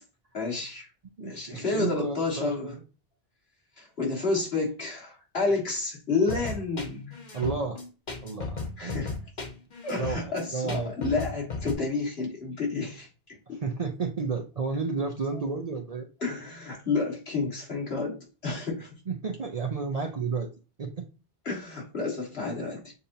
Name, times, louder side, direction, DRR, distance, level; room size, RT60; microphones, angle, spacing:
voice 1, 0.3-0.9 1.2-2.7 3.8-7.2 8.8-9.1 9.8-13.6 16.2-18.9 21.5-22.9, left 3 dB, 70° left, 2.0 m, -30 dB
voice 2, 1.2-2.8 7.3-7.8 8.2-9.1 10.0-10.9 13.5-16.1 19.1-20.5 20.8-21.1, right 4 dB, 45° right, 0.5 m, -32 dB
sound 1, 6.3-11.7, left 4 dB, 45° left, 1.1 m, -35 dB
6.9 x 2.8 x 2.7 m
omnidirectional pair, 1.1 m